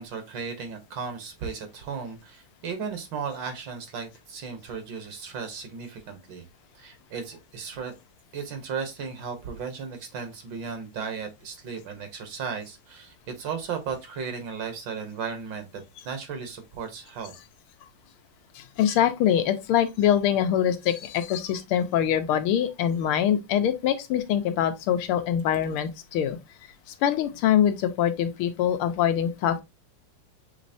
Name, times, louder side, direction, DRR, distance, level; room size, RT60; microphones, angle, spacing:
voice 1, 0.0-6.4 6.8-7.9 8.3-15.7 16.1-17.3, right 6 dB, 65° right, 1.6 m, -35 dB
voice 2, 18.5-26.4 27.0-29.6, left 10 dB, 85° left, 1.6 m, -24 dB
6.6 x 3.0 x 2.6 m
omnidirectional pair, 2.4 m